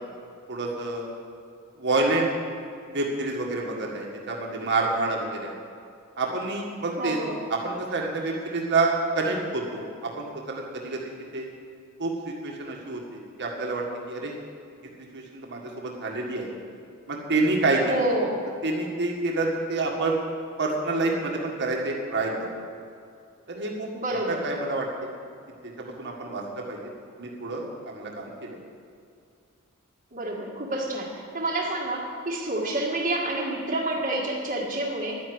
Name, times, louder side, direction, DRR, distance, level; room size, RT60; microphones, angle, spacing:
voice 1, 0.5-1.1 1.8-2.3 2.9-5.6 6.2-7.2 7.5-11.5 12.0-14.4 15.1-16.5 17.1-18.0 18.6-20.2 20.6-22.5 23.5-25.1 25.6-26.8 27.2-28.6, right 3 dB, 55° right, 0 dB, 1.8 m, -28 dB
voice 2, 7.0-7.4 17.8-18.5 23.9-24.5 30.1-35.2, right 1 dB, 35° right, -4 dB, 1.8 m, -28 dB
11.0 x 9.6 x 7.9 m, 2.4 s
head